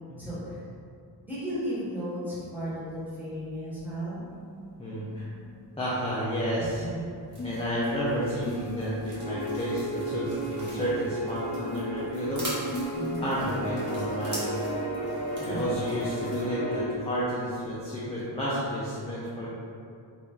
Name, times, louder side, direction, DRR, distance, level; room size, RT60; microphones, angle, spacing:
voice 1, 0.2-0.6 1.2-4.2 6.6-7.1 12.9-13.3 15.5-15.6, equal, 5° right, -11 dB, 1.3 m, -35 dB
sound 1, 2.7-18.8, left 2 dB, 65° left, 0.7 m, -43 dB
voice 2, 4.8-5.3 5.8-6.8 7.4-12.5 13.2-14.5 15.4-19.5, equal, 15° left, -9 dB, 0.5 m, -31 dB
sound 2, 7.3-16.4, right 1 dB, 40° right, 1.1 m, -44 dB
sound 3, 9.2-16.9, right 1 dB, 70° right, 0.9 m, -33 dB
3.0 x 2.6 x 3.6 m, 2.4 s
wide cardioid pair, 80°, 46 cm